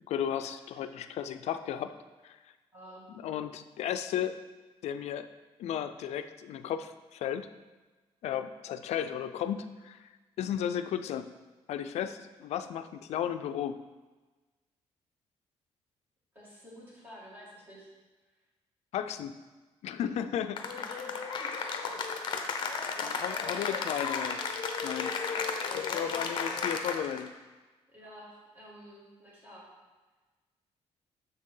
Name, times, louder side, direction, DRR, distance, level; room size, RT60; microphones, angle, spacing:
voice 1, 0.1-1.9 2.2-2.4 3.1-4.4 4.8-5.3 5.6-7.5 8.2-10.1 10.4-11.3 11.7-13.8 18.9-19.3 19.8-20.7 23.0-25.1 25.7-27.3, left 9 dB, 80° left, 10 dB, 0.4 m, -34 dB
voice 2, 2.7-3.1 16.3-17.9 20.7-22.0 22.9-23.9 25.0-26.2 27.9-29.7, equal, 15° right, -7 dB, 2.3 m, -50 dB
Cheering / Applause, 20.6-27.3, left 5 dB, 45° left, 0.7 m, -34 dB
6.7 x 6.6 x 3.8 m, 1.2 s
cardioid pair, 165°, 11 cm